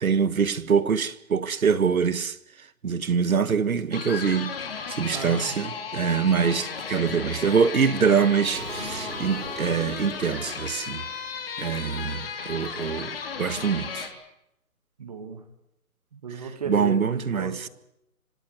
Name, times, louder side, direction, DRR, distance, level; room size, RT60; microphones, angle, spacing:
voice 1, 0.0-4.6 4.9-11.0 11.6-14.1 16.7-17.7, right 6 dB, 65° right, 1.6 m, -24 dB
sound 1, 3.9-14.1, left 6 dB, 40° left, 3.4 m, -35 dB
voice 2, 5.1-5.5 15.0-15.5 16.1-17.7, right 5 dB, 25° right, 1.7 m, -35 dB
Explosion, 8.5-11.4, right 3 dB, 85° right, 5.8 m, -40 dB
26.0 x 17.5 x 7.9 m
hypercardioid pair, 175°, 44 cm